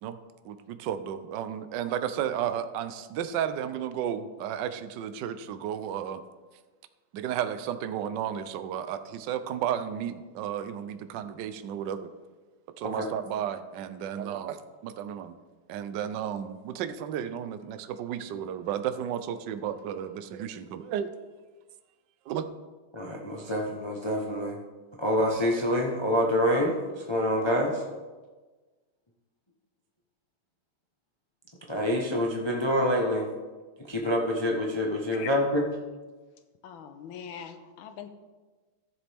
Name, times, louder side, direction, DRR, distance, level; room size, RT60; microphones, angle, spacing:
voice 1, 0.4-6.2 7.1-12.1 12.8-15.4 15.7-21.1 22.2-22.5, right 9 dB, 70° right, 10 dB, 1.1 m, -33 dB
voice 2, 22.9-24.6 25.0-27.8 31.7-33.3 33.8-35.7, equal, 30° left, -1 dB, 0.5 m, -26 dB
voice 3, 36.6-38.1, left 8 dB, 70° left, 8 dB, 1.5 m, -42 dB
14.0 x 7.3 x 3.5 m, 1.3 s
omnidirectional pair, 2.4 m